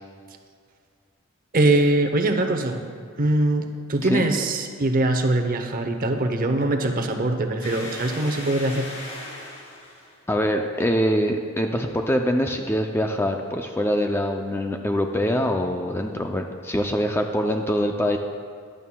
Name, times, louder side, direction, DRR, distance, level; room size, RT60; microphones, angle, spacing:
voice 1, 1.5-2.8 3.2-8.9, right 2 dB, 40° right, 5 dB, 0.7 m, -22 dB
sound 1, 7.6-10.1, left 1 dB, 90° left, 2.4 m, -38 dB
voice 2, 10.3-18.2, equal, 10° left, 4 dB, 0.4 m, -24 dB
14.0 x 11.0 x 2.2 m, 2.2 s
head